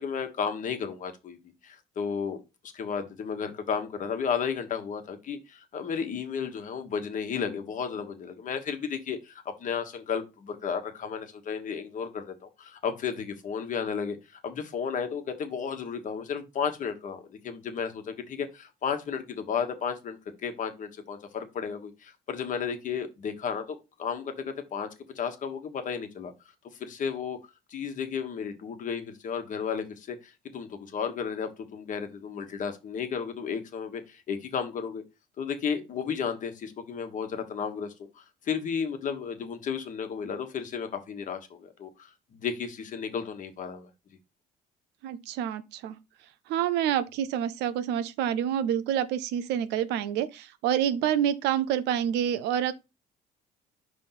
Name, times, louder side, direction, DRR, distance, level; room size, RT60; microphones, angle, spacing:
voice 1, 0.0-2.4 2.7-24.9 25.1-26.3 26.8-27.4 27.7-35.0 35.4-43.9, left 6 dB, 50° left, 1.3 m, -33 dB
voice 2, 45.0-45.9 46.5-52.7, right 10 dB, 85° right, 0.6 m, -27 dB
5.3 x 3.4 x 5.7 m
cardioid pair, 110°, 17 cm